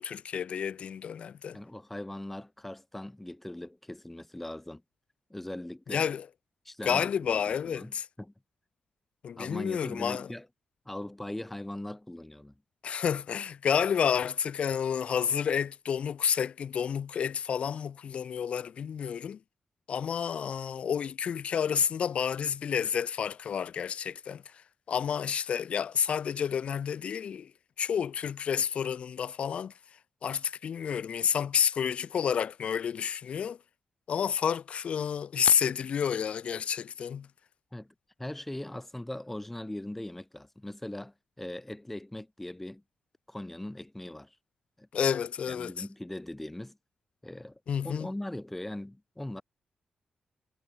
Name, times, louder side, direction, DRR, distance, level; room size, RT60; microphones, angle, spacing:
voice 1, 0.0-1.6 5.9-6.3 6.8-8.1 9.2-10.3 12.8-19.4 19.9-27.5 27.8-29.7 30.2-33.6 34.1-37.3 44.9-45.7 47.7-48.1, left 7 dB, 60° left, 0.8 m, -30 dB
voice 2, 1.5-4.8 5.3-6.1 6.7-8.3 9.3-10.5 10.9-12.5 37.7-42.8 43.3-44.4 44.8-44.9 45.5-46.8 47.2-47.6 47.8-49.4, left 1 dB, 10° left, 2.1 m, -40 dB
cardioid pair, 115°, 2 cm